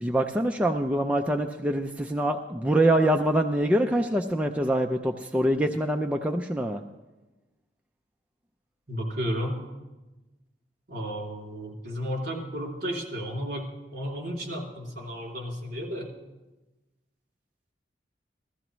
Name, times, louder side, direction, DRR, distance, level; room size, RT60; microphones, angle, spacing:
voice 1, 0.0-6.8, right 1 dB, 10° right, 3 dB, 0.4 m, -25 dB
voice 2, 8.9-9.6 10.9-16.1, equal, 55° right, -1 dB, 3.0 m, -33 dB
15.5 x 13.5 x 3.1 m, 1.1 s
head